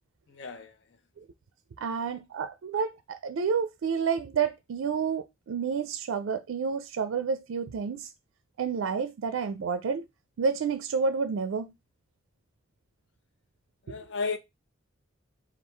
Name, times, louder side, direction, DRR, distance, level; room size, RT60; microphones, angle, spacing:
voice 1, 0.3-0.8 13.8-14.4, left 4 dB, 60° left, 0.6 m, -33 dB
voice 2, 1.8-8.1 8.6-10.0 10.4-11.7, right 5 dB, 80° right, 0.4 m, -29 dB
3.5 x 2.4 x 4.4 m
head